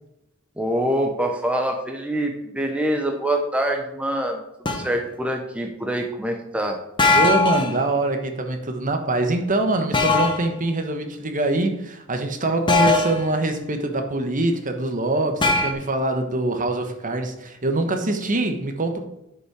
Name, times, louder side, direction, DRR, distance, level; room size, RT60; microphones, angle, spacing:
voice 1, 0.6-4.4 4.7-6.8, right 1 dB, 5° right, 3 dB, 0.8 m, -25 dB
sound 1, 4.7-4.9 7.0-7.8 9.9-10.5 12.7-13.3 15.4-15.7, left 3 dB, 25° left, 1.1 m, -19 dB
voice 2, 7.1-19.1, right 2 dB, 40° right, 6 dB, 1.1 m, -24 dB
10.0 x 5.6 x 4.7 m, 0.86 s
head